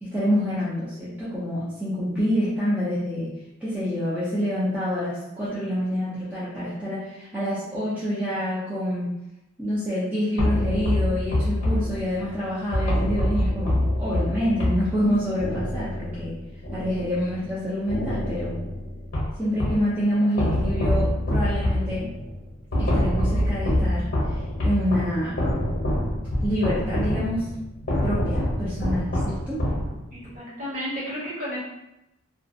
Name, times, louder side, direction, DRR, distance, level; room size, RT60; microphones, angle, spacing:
voice 1, 0.0-3.3 3.6-9.1 9.6-16.3 16.7-18.6 19.4-22.1 22.8-25.4 26.4-27.4 28.0-29.6, equal, 5° right, -11 dB, 0.5 m, -27 dB
sound 1, 10.4-17.5 17.9-19.9 20.4-30.3, left 1 dB, 50° left, 0.9 m, -26 dB
voice 2, 30.1-31.6, equal, 40° right, -8 dB, 1.0 m, -32 dB
2.4 x 2.1 x 2.5 m, 0.90 s
head